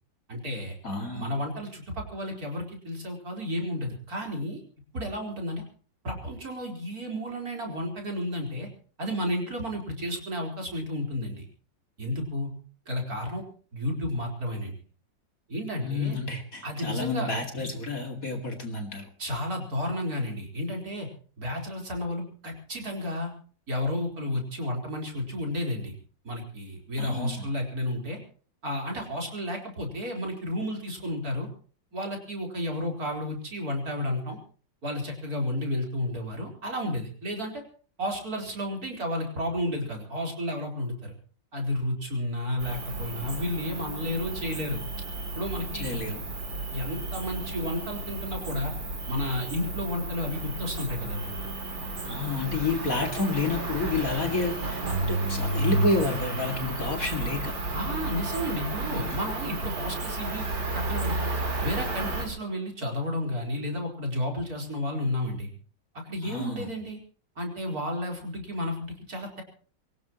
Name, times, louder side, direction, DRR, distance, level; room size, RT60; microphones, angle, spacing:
voice 1, 0.3-0.7 1.1-4.6 4.9-5.6 6.0-8.7 9.0-11.5 12.0-12.5 12.9-13.4 13.7-14.7 15.5-16.2 16.6-17.3 19.2-21.1 21.4-23.3 23.7-25.9 26.2-28.2 28.6-31.5 31.9-34.4 34.8-37.6 38.0-41.1 41.5-44.8 45.4-45.9 46.7-48.7 49.1-51.3 57.7-60.5 60.7-61.3 61.6-65.5 66.0-67.0 67.4-69.4, left 1 dB, 50° right, 1 dB, 4.8 m, -32 dB
voice 2, 0.8-1.3 15.8-19.1 27.0-27.5 45.8-46.2 52.0-57.5 66.2-66.7, left 3 dB, 45° left, 4 dB, 2.8 m, -30 dB
Cricket, 42.6-62.3, right 2 dB, 75° right, 4.2 m, -32 dB
23.5 x 18.0 x 3.0 m, 0.42 s
omnidirectional pair, 2.1 m